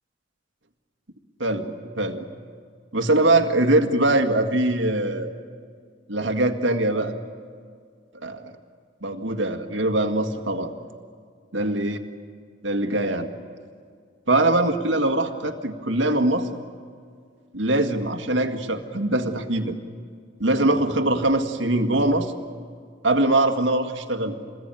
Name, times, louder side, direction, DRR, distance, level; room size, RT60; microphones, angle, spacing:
voice 1, 1.4-2.2 2.9-5.3 6.1-7.1 8.1-8.5 9.0-10.7 11.5-12.0 12.6-13.3 14.3-16.5 17.5-19.8 20.4-22.3 23.0-24.3, right 2 dB, 80° right, 6 dB, 1.9 m, -22 dB
26.5 x 21.0 x 9.1 m, 2.1 s
head